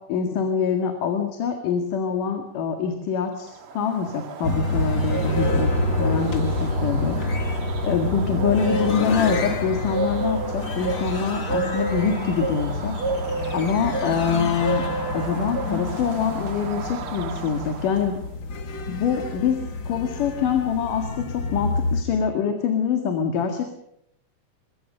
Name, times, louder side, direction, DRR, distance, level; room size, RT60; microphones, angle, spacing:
voice 1, 0.1-7.2 7.5-14.9 15.1-18.2 18.9-23.7, left 6 dB, 85° left, 5 dB, 3.5 m, -25 dB
Bird, 3.5-18.2, right 4 dB, 50° right, 2.0 m, -32 dB
sound 1, 4.4-22.0, left 3 dB, 40° left, 2.1 m, -28 dB
23.5 x 22.5 x 6.7 m, 0.76 s
omnidirectional pair, 3.6 m